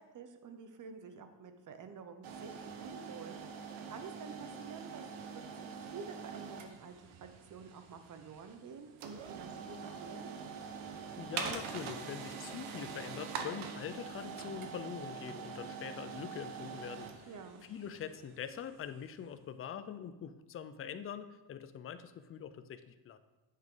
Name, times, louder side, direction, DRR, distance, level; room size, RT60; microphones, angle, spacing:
voice 1, 0.1-5.0 5.3-6.9 7.2-10.3 17.3-17.6, right 5 dB, 40° right, 8 dB, 0.8 m, -49 dB
sound 1, 2.2-19.1, right 6 dB, 90° right, 1.1 m, -45 dB
voice 2, 11.2-17.3 17.6-23.2, left 8 dB, 30° left, 11 dB, 0.4 m, -44 dB
9.3 x 7.5 x 3.8 m, 1.1 s
cardioid pair, 145°, 47 cm